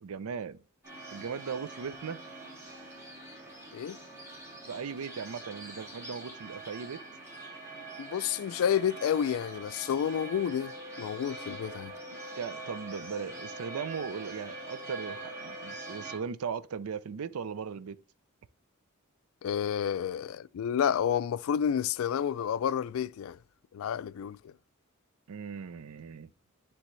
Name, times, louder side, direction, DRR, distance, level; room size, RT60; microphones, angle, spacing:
voice 1, 0.0-0.6 1.1-2.2 4.6-7.0 12.4-18.0 25.3-26.3, right 6 dB, 85° right, 0.5 m, -38 dB
sound 1, 0.8-16.2, right 3 dB, 15° right, 2.7 m, -45 dB
voice 2, 8.0-10.7 11.0-11.9 19.4-23.4 23.7-24.5, left 8 dB, 70° left, 0.3 m, -30 dB
sound 2, 10.1-16.1, left 3 dB, 30° right, 1.1 m, -47 dB
10.0 x 3.4 x 3.1 m
head